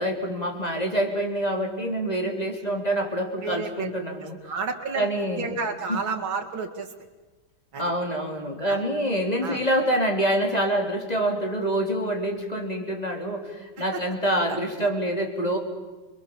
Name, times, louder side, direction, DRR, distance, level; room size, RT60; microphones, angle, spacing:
voice 1, 0.0-4.5 4.9-5.5 5.9-6.0 7.8-15.6, right 1 dB, 20° left, 2 dB, 3.2 m, -26 dB
voice 2, 3.4-3.9 4.4-6.9 7.7-7.9 8.6-8.8 9.4-9.6 13.9-14.0 14.5-14.9, right 4 dB, 70° right, 4 dB, 3.1 m, -31 dB
27.5 x 23.0 x 7.2 m, 1.2 s
omnidirectional pair, 2.3 m